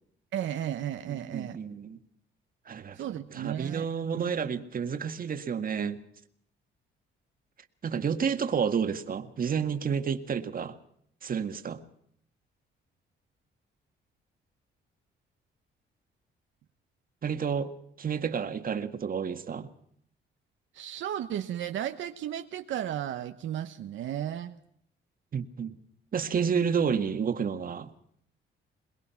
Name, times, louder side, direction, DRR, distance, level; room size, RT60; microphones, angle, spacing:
voice 1, 0.3-1.6 2.9-4.5 20.7-24.6, right 11 dB, 75° right, 1.1 m, -34 dB
voice 2, 1.1-2.0 2.7-3.0 3.3-6.0 7.8-10.8 11.2-11.8 17.2-19.7 25.3-25.8 26.1-27.9, right 6 dB, 45° right, 1.8 m, -30 dB
22.5 x 21.0 x 5.8 m
cardioid pair, 90°, 20 cm